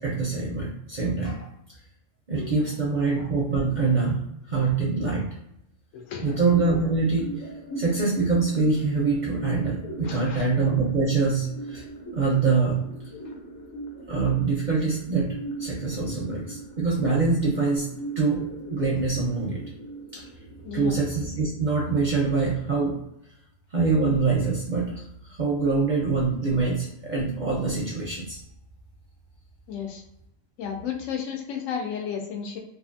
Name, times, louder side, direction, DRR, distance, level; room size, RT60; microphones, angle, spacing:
voice 1, 0.0-1.5 2.3-4.2 4.5-5.2 6.2-7.3 7.8-11.8 12.1-12.8 14.1-17.9 18.2-18.4 18.7-19.6 20.1-20.3 20.7-22.9 23.7-28.4, right 4 dB, 55° right, -3 dB, 0.5 m, -24 dB
voice 2, 2.4-2.7 4.5-4.6 5.9-6.4 10.0-10.5 13.2-13.3 20.6-21.0 29.7-30.0 30.6-32.6, left 7 dB, 85° left, 2 dB, 1.0 m, -33 dB
sound 1, 6.4-22.3, right 2 dB, 65° left, 1.0 m, -40 dB
2.6 x 2.5 x 2.5 m, 0.78 s
omnidirectional pair, 1.3 m